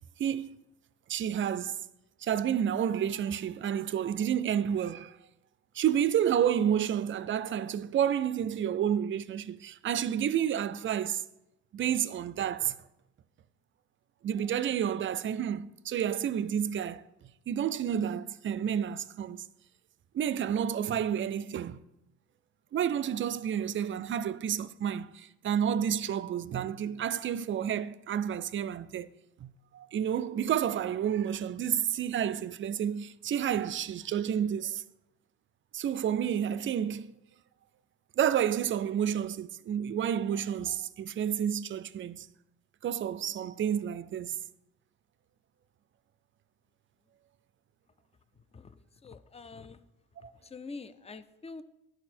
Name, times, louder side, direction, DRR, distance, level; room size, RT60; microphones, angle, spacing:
voice 1, 0.2-0.5 1.1-1.8 2.2-5.2 5.7-11.2 11.7-12.8 14.2-17.1 17.5-19.4 20.1-21.8 22.7-29.1 29.4-34.8 35.7-37.1 38.2-42.3 42.8-44.4 50.2-50.3, right 9 dB, 40° right, 0.4 m, -30 dB
voice 2, 49.0-49.8 50.2-51.6, left 4 dB, 20° left, 0.5 m, -45 dB
10.5 x 4.9 x 4.3 m
cardioid pair, 90°, 30 cm